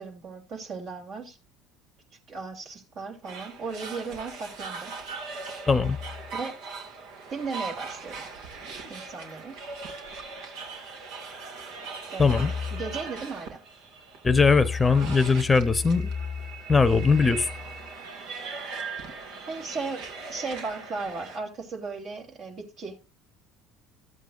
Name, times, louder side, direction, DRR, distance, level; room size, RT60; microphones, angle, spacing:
voice 1, 0.0-1.4 2.3-4.9 6.3-6.6 7.3-8.2 8.9-9.6 12.1-13.6 19.5-23.0, right 4 dB, 55° right, 3.5 m, -36 dB
sound 1, 3.2-21.4, right 4 dB, 70° right, 2.2 m, -40 dB
voice 2, 5.7-6.0 12.2-12.5 14.2-16.1 16.7-17.5, left 4 dB, 20° left, 1.0 m, -20 dB
14.0 x 8.2 x 2.6 m
hypercardioid pair, 75°, 0 cm